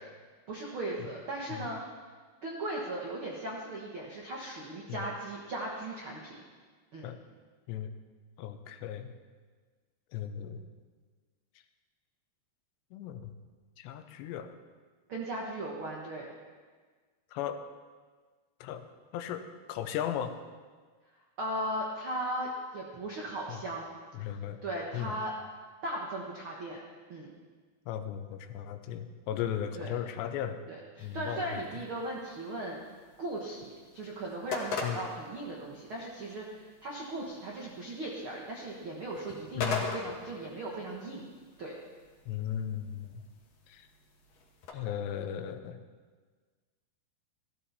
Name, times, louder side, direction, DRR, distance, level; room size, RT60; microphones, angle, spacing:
voice 1, 0.5-1.8 2.4-6.4 6.9-7.1 15.1-16.3 21.4-23.9 24.2-24.3 24.6-25.3 25.8-26.8 27.1-27.3 29.7-29.9 30.7-32.8 33.2-33.7 33.9-41.2 41.6-41.7, right 1 dB, 85° right, -3 dB, 1.1 m, -37 dB
voice 2, 8.4-9.1 10.1-10.7 12.9-13.3 13.8-14.5 17.3-17.6 18.6-18.8 19.1-20.3 23.5-23.6 24.1-24.6 24.9-25.1 27.9-30.6 31.0-31.6 34.8-35.0 39.5-39.9 42.3-43.2 43.7-43.9 44.7-45.8, left 10 dB, 90° left, 8 dB, 3.0 m, -36 dB
sound 1, 31.0-44.7, left 4 dB, 65° left, 1.6 m, -43 dB
15.5 x 14.0 x 4.2 m, 1.5 s
omnidirectional pair, 4.8 m